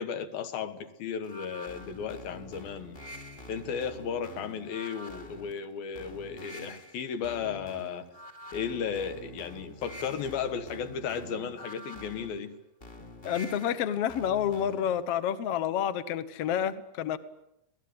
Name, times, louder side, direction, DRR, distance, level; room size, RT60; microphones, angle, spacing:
voice 1, 0.0-3.0 3.5-8.1 8.5-12.6, left 7 dB, 85° left, 3.5 m, -35 dB
sound 1, 1.2-15.0, equal, 25° left, 1.5 m, -46 dB
voice 2, 13.2-17.2, left 9 dB, 55° left, 1.8 m, -29 dB
27.5 x 18.5 x 9.7 m
omnidirectional pair, 4.1 m